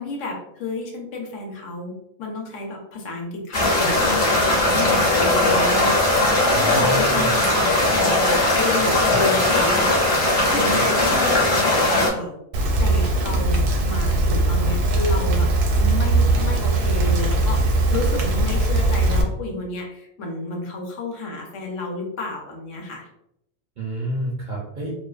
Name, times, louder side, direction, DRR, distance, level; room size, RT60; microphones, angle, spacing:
voice 1, 0.0-10.2 10.5-12.4 12.8-15.5 15.8-23.1, left 2 dB, 75° left, 1 dB, 1.0 m, -31 dB
sound 1, 3.5-12.1, left 1 dB, 45° left, 0.8 m, -19 dB
voice 2, 6.5-7.3 7.9-8.2 8.8-8.9 9.1-9.2 10.8-10.9 13.5-13.8 16.7-17.1 18.2-18.4 23.8-25.0, right 1 dB, 60° right, -4 dB, 0.5 m, -31 dB
Rain, 12.5-19.2, right 2 dB, 80° right, 0.9 m, -20 dB
2.5 x 2.1 x 2.3 m, 0.78 s
omnidirectional pair, 1.3 m